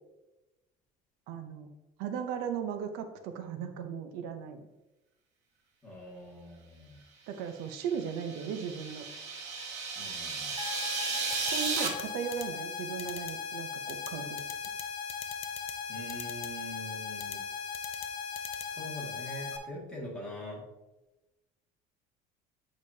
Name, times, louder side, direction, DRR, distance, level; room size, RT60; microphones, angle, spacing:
voice 1, 1.3-1.7 2.0-4.6 7.3-9.0 11.4-14.4, right 7 dB, 75° right, 7 dB, 0.7 m, -37 dB
voice 2, 5.8-7.0 10.0-10.6 15.9-17.4 18.7-20.6, equal, 5° left, -6 dB, 1.9 m, -43 dB
sound 1, 7.7-11.9, right 5 dB, 45° right, 1.0 m, -35 dB
sound 2, 10.6-19.6, left 5 dB, 75° left, 0.8 m, -38 dB
sound 3, 11.3-12.0 12.3-12.4 13.0-13.3 13.9-14.1 14.4-14.8 15.1-15.7 16.1-16.5 17.2-17.4 17.7-18.1 18.3-18.6, left 11 dB, 40° left, 0.5 m, -41 dB
8.2 x 5.1 x 2.7 m, 1.0 s
cardioid pair, 170°, 16 cm